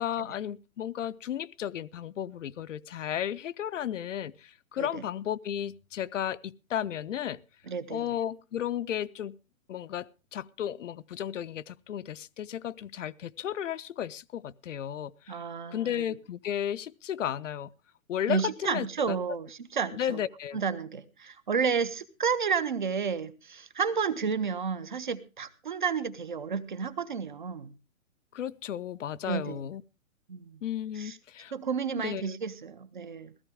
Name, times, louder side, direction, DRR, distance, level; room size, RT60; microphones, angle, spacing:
voice 1, 0.0-7.4 7.9-9.4 9.7-15.4 15.7-17.7 18.1-19.2 20.0-20.6 28.3-29.8 30.6-31.5 32.0-32.4, left 10 dB, 60° left, 0.6 m, -34 dB
voice 2, 7.7-8.1 15.3-16.0 18.3-20.2 20.5-27.7 29.3-29.6 30.3-30.6 31.0-31.2 31.5-33.3, right 6 dB, 35° right, 0.6 m, -31 dB
16.0 x 14.5 x 3.5 m
hypercardioid pair, 175°, 42 cm